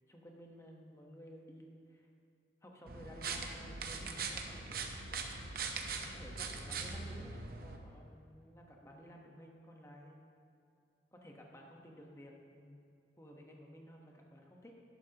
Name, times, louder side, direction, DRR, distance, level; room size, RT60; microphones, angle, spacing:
voice 1, 0.1-2.1 2.6-4.8 6.0-10.3 11.1-14.7, equal, 15° left, 0 dB, 1.1 m, -54 dB
sound 1, 2.9-7.8, right 4 dB, 55° right, 0.8 m, -41 dB
12.0 x 11.0 x 2.9 m, 2.5 s
head